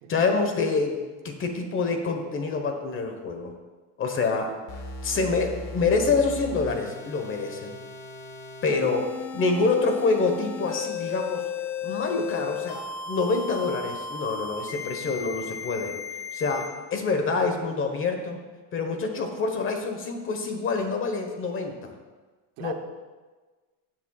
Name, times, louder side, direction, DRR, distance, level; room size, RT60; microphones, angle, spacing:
voice 1, 0.1-3.5 4.0-4.5 5.0-7.8 8.6-9.0 9.3-11.4 11.8-16.0 16.3-18.4 18.7-21.9 22.6-22.7, left 4 dB, 30° left, 5 dB, 1.2 m, -26 dB
sound 1, 4.7-16.7, left 5 dB, 80° left, 1.6 m, -36 dB
voice 2, 8.8-9.2 22.6-22.7, right 9 dB, 65° right, 8 dB, 0.8 m, -39 dB
15.0 x 7.6 x 2.4 m, 1.3 s
cardioid pair, 145°, 41 cm